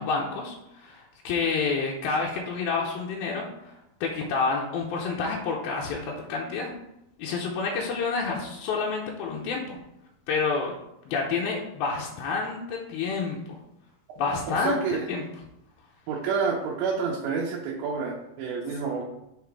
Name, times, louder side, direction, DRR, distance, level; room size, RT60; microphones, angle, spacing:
voice 1, 0.0-3.7 4.0-6.0 6.3-6.7 7.2-9.8 10.3-10.7 11.1-13.6 14.2-15.2, left 4 dB, 90° left, -2 dB, 2.7 m, -29 dB
voice 2, 14.6-15.1 16.1-19.0, right 5 dB, 80° right, -3 dB, 2.6 m, -28 dB
6.9 x 4.1 x 4.7 m, 0.87 s
omnidirectional pair, 4.2 m